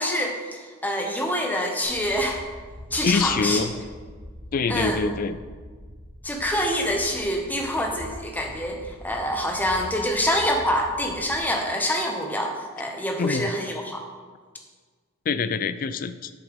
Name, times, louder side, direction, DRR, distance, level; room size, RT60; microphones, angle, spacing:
voice 1, 0.0-2.4 2.9-3.7 4.7-5.0 6.2-14.0, equal, 10° left, 2 dB, 0.8 m, -26 dB
sound 1, 1.8-11.6, equal, 55° left, 1.4 m, -43 dB
voice 2, 3.0-3.7 4.5-5.4 13.2-13.5 15.3-16.3, left 4 dB, 40° left, 13 dB, 0.3 m, -25 dB
8.0 x 7.1 x 3.5 m, 1.5 s
head